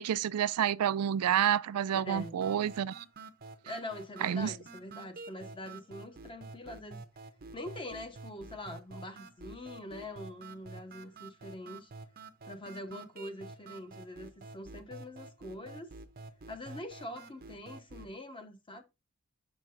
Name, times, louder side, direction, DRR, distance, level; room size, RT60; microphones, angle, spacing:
voice 1, 0.0-3.0 4.2-4.5, right 9 dB, 85° right, 0.4 m, -29 dB
voice 2, 1.9-2.3 3.6-7.0 7.5-11.9 12.4-15.9 16.5-18.8, left 1 dB, 20° left, 0.9 m, -44 dB
sound 1, 2.2-18.2, right 3 dB, 40° right, 0.6 m, -49 dB
7.5 x 6.0 x 2.6 m
head